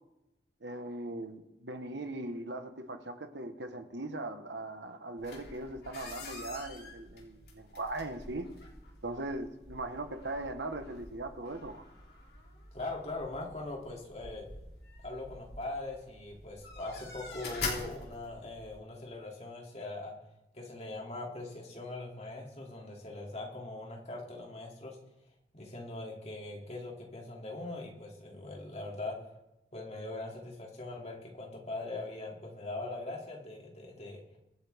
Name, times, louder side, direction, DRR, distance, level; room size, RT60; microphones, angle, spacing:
voice 1, 0.6-8.5 9.0-11.8, right 2 dB, 90° right, 7 dB, 1.3 m, -39 dB
sound 1, 5.2-18.8, left 3 dB, 60° left, 2.9 m, -45 dB
voice 2, 12.7-14.5 15.0-20.1 20.5-25.0 25.5-29.2 29.7-34.2, left 2 dB, 35° left, -1 dB, 2.6 m, -41 dB
24.0 x 8.3 x 3.5 m, 0.96 s
head